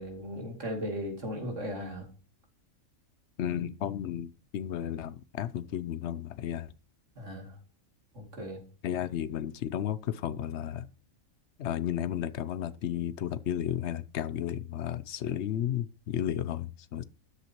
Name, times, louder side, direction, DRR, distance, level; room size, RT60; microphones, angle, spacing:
voice 1, 0.0-2.1 7.2-7.6 8.1-8.6, equal, 60° right, 3.0 m, -37 dB
voice 2, 3.4-6.7 8.8-10.9 11.6-17.0, left 10 dB, 60° left, 0.8 m, -33 dB
13.0 x 8.0 x 3.0 m
omnidirectional pair, 1.4 m